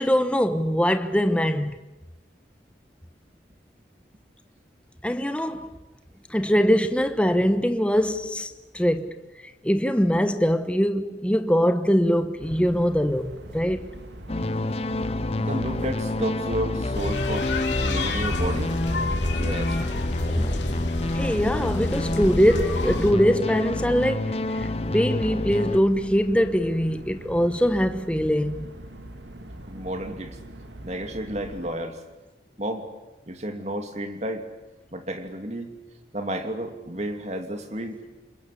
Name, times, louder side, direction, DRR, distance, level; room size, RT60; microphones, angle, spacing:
voice 1, 0.0-1.7 5.0-5.8 6.3-9.1 9.6-13.9 20.3-20.7 21.1-24.7 24.9-28.7, equal, 5° left, 1.0 m, -22 dB
sound 1, 12.4-31.7, right 1 dB, 75° right, 2.5 m, -42 dB
sound 2, 14.3-25.8, left 2 dB, 35° left, 0.8 m, -28 dB
voice 2, 15.4-17.5 17.8-18.7 19.3-19.8 29.6-30.4 30.8-32.0 32.6-32.9 33.3-34.5 34.9-35.7 36.1-38.0, right 1 dB, 35° right, 2.7 m, -31 dB
sound 3, 16.9-23.1, left 2 dB, 80° left, 3.4 m, -29 dB
27.5 x 21.5 x 8.5 m
head